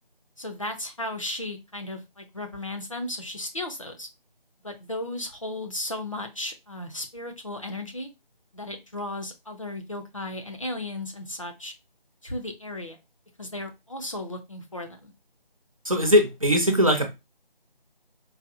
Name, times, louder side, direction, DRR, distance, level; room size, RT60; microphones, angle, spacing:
voice 1, 0.4-4.1 4.6-8.1 8.5-11.7 12.2-13.0 13.4-15.1, left 1 dB, 35° left, 0.6 m, -35 dB
voice 2, 15.9-17.1, equal, 35° right, 0.6 m, -20 dB
4.0 x 2.3 x 2.5 m
figure-of-eight pair, 165°, 29 cm